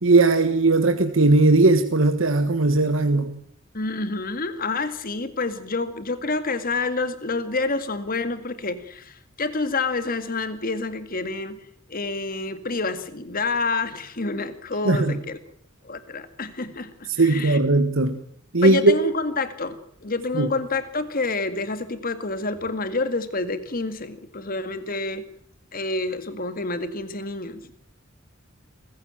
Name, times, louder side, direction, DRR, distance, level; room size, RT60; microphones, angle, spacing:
voice 1, 0.0-3.3 14.8-15.2 17.2-18.2 18.5-19.0 20.3-20.5, right 2 dB, 75° right, 8 dB, 1.5 m, -18 dB
voice 2, 3.7-11.6 11.9-15.4 15.8-17.6 18.6-25.2 25.7-27.6, left 3 dB, 45° left, 11 dB, 2.0 m, -28 dB
23.5 x 15.5 x 8.9 m, 0.66 s
head